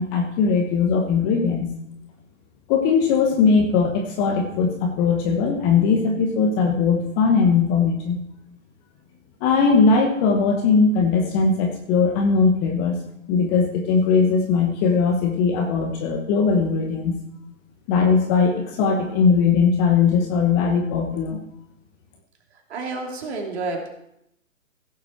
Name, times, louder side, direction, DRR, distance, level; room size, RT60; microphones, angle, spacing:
voice 1, 0.0-1.7 2.7-8.2 9.4-13.0 13.3-17.2 17.9-21.4, left 5 dB, 20° left, 3 dB, 0.9 m, -19 dB
voice 2, 22.7-23.9, right 3 dB, 50° right, 2 dB, 2.9 m, -29 dB
16.0 x 7.4 x 4.5 m, 0.79 s
figure-of-eight pair, 135°, 41 cm